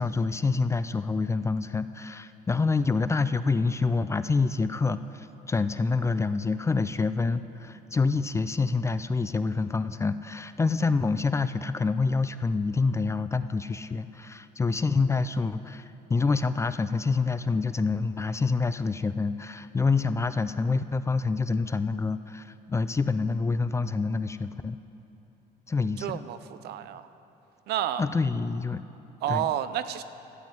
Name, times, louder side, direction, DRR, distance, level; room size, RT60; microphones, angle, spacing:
voice 1, 0.0-24.8 25.7-26.2 28.0-28.8 29.3-29.5, left 4 dB, 15° left, 12 dB, 0.3 m, -27 dB
voice 2, 26.0-27.1 27.7-28.1 29.2-30.0, right 11 dB, 75° right, 12 dB, 0.6 m, -30 dB
13.0 x 7.4 x 7.8 m, 2.9 s
cardioid pair, 110°, 17 cm